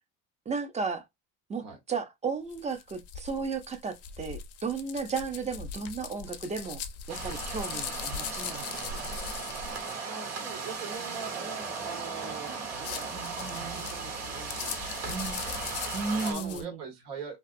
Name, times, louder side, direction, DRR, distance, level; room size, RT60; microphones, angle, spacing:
voice 1, 0.5-1.0 1.5-6.8 7.1-9.2 13.1-13.9 15.1-15.4 15.9-16.8, right 5 dB, 20° right, 0.4 m, -34 dB
sound 1, 2.5-10.0 12.6-16.6, left 7 dB, 40° left, 0.4 m, -40 dB
sound 2, 7.1-16.3, right 4 dB, 40° right, 1.2 m, -37 dB
voice 2, 10.0-13.1 13.7-15.1 15.4-15.7 16.1-17.4, right 5 dB, 85° right, 1.6 m, -42 dB
2.5 x 2.3 x 2.5 m
cardioid pair, 120°, 38 cm